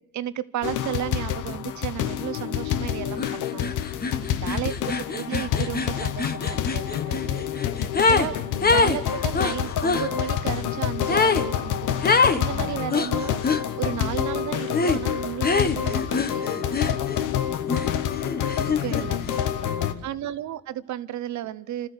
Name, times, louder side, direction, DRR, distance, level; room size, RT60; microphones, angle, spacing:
voice 1, 0.1-3.8 4.4-4.7 5.1-7.5 8.1-8.3 8.7-13.4 13.8-16.9 18.7-19.3 20.0-21.9, right 12 dB, 70° right, 0.9 m, -33 dB
sound 1, 0.6-19.9, left 10 dB, 85° left, 1.1 m, -28 dB
sound 2, 3.2-3.3 3.6-8.3 8.6-10.1 11.1-11.5 12.0-12.4 12.9-13.6 14.7-15.0 15.4-17.3 17.7-19.1, left 4 dB, 30° left, 1.3 m, -24 dB
voice 2, 4.1-4.7 7.8-8.0 8.6-8.9 12.5-12.8 17.5-18.0 18.6-20.0, left 7 dB, 60° left, 1.5 m, -43 dB
29.5 x 13.0 x 8.3 m
cardioid pair, 90°, 30 cm